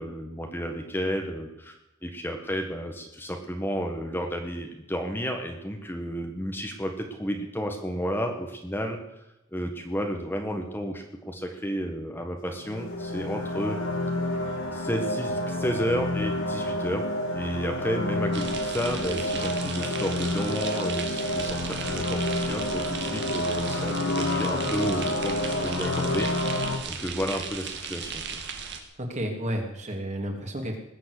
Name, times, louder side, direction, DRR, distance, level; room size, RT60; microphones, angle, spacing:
voice 1, 0.0-1.7 2.0-9.0 9.5-13.8 14.7-26.3 26.9-28.3, equal, 10° left, 3 dB, 1.5 m, -32 dB
sound 1, 12.5-26.8, left 1 dB, 65° left, 2.6 m, -29 dB
sound 2, 18.3-28.8, right 5 dB, 55° right, 2.2 m, -36 dB
voice 2, 29.0-30.8, equal, 35° right, 2 dB, 2.9 m, -31 dB
20.0 x 7.5 x 8.4 m, 0.89 s
head